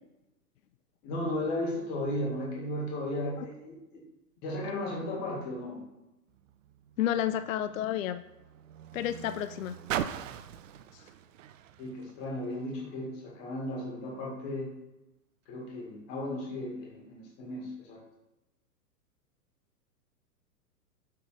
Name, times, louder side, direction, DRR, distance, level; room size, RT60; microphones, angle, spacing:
voice 1, 1.0-4.0 4.4-5.8 11.8-14.7 15.5-18.0, left 1 dB, 40° left, -2 dB, 2.1 m, -35 dB
Car, 6.3-12.9 13.7-13.8, right 10 dB, 55° right, 0.5 m, -41 dB
voice 2, 7.0-8.2 8.9-9.8 10.9-11.0, left 11 dB, 55° left, 11 dB, 0.5 m, -31 dB
8.4 x 3.9 x 4.9 m, 0.98 s
figure-of-eight pair, 110°, 48 cm